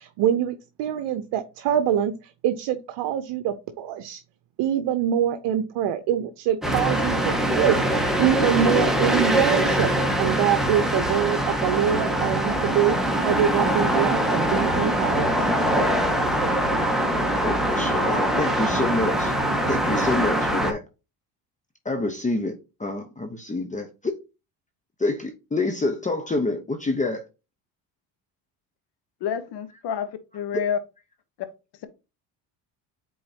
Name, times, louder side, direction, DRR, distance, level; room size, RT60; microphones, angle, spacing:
voice 1, 0.0-4.2 4.6-9.9 10.2-13.0 13.3-15.5, right 10 dB, 70° right, 0.8 m, -24 dB
sound 1, 6.6-20.7, right 1 dB, ahead, 1.4 m, -23 dB
voice 2, 17.4-19.3 19.7-20.8 21.8-24.1 25.0-27.2 30.5-30.6, left 2 dB, 15° left, 0.9 m, -27 dB
voice 3, 29.2-30.8, left 8 dB, 65° left, 1.1 m, -28 dB
8.6 x 3.9 x 2.8 m
supercardioid pair, 85°, 44 cm